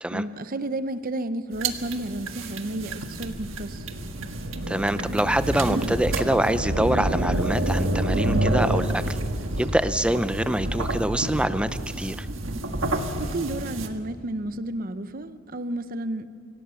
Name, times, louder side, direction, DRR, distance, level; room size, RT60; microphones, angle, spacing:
voice 1, 0.1-3.9 13.2-16.2, right 1 dB, 45° right, 12 dB, 0.8 m, -32 dB
sound 1, 1.5-13.9, right 1 dB, 75° right, 1.6 m, -28 dB
voice 2, 4.7-9.2 9.6-12.3, right 1 dB, 5° right, 12 dB, 0.6 m, -25 dB
25.5 x 17.5 x 6.9 m, 2.6 s
head